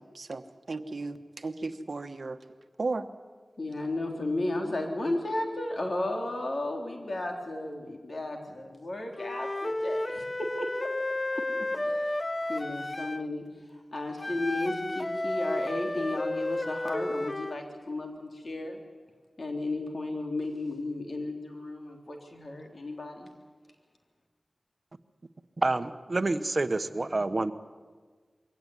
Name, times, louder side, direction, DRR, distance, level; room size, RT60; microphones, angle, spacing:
voice 1, 0.0-2.4 2.8-3.1, right 3 dB, 70° right, 8 dB, 1.2 m, -35 dB
voice 2, 3.6-10.9 11.3-11.4 11.8-12.1 12.5-13.4 13.9-18.8 19.4-23.3, left 2 dB, 60° left, 3 dB, 3.6 m, -34 dB
Wind instrument woodwind instrument, 9.2-13.3 14.2-17.6, left 1 dB, 30° left, 0.7 m, -32 dB
voice 3, 25.6-27.5, right 2 dB, 50° right, 11 dB, 1.1 m, -28 dB
23.0 x 17.0 x 9.8 m, 1.5 s
wide cardioid pair, 50°, 0 cm